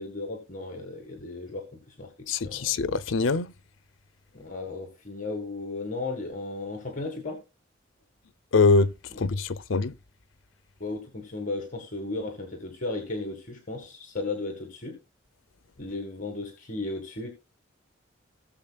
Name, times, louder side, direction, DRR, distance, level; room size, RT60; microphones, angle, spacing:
voice 1, 0.0-2.1 2.4-2.7 4.3-7.4 10.8-15.0 15.8-17.3, left 2 dB, 45° left, 1.8 m, -35 dB
voice 2, 2.3-3.5 8.5-9.9, left 4 dB, 85° left, 0.6 m, -23 dB
18.0 x 7.1 x 2.3 m
head